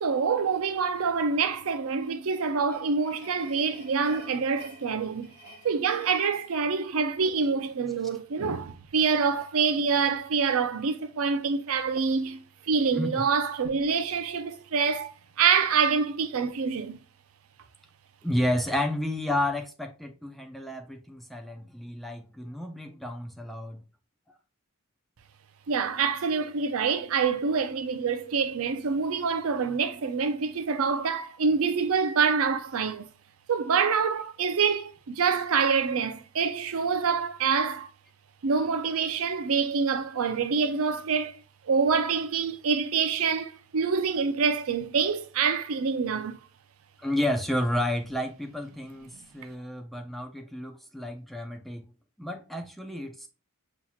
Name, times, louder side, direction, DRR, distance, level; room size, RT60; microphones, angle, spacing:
voice 1, 0.0-5.4 5.6-17.0 25.7-33.1 33.5-37.9 38.4-41.4 41.7-46.4, right 5 dB, 70° right, 0.5 m, -26 dB
sound 1, 1.8-7.2, equal, 50° left, 2.1 m, -52 dB
voice 2, 18.2-23.8 47.0-51.8 52.2-53.3, left 1 dB, ahead, 0.5 m, -31 dB
5.7 x 2.9 x 2.3 m
head